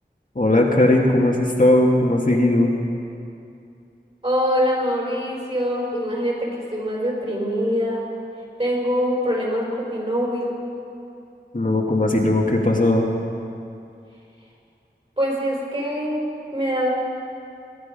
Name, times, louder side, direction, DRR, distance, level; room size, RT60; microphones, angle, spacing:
voice 1, 0.3-2.7 11.5-13.1, left 1 dB, 45° left, -1 dB, 1.7 m, -18 dB
voice 2, 4.2-8.0 8.6-10.6 15.2-16.2 16.5-16.9, equal, 35° right, -3 dB, 4.6 m, -24 dB
21.0 x 11.0 x 5.2 m, 2.5 s
wide cardioid pair, 45°, 18 cm